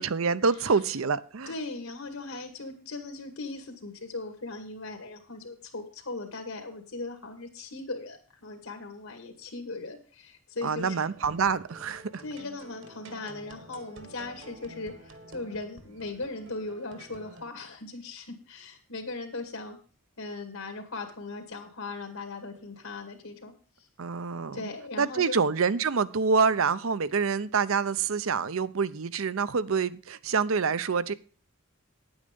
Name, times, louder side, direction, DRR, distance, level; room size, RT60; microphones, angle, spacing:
voice 1, 0.0-1.5 10.6-12.2 24.0-24.6 25.0-31.1, right 5 dB, 75° right, 0.7 m, -26 dB
voice 2, 1.5-11.0 12.2-19.8 20.2-23.9 24.5-25.4, left 3 dB, 80° left, 2.2 m, -39 dB
sound 1, 10.8-17.5, right 1 dB, 60° right, 1.5 m, -49 dB
9.8 x 8.9 x 5.3 m
head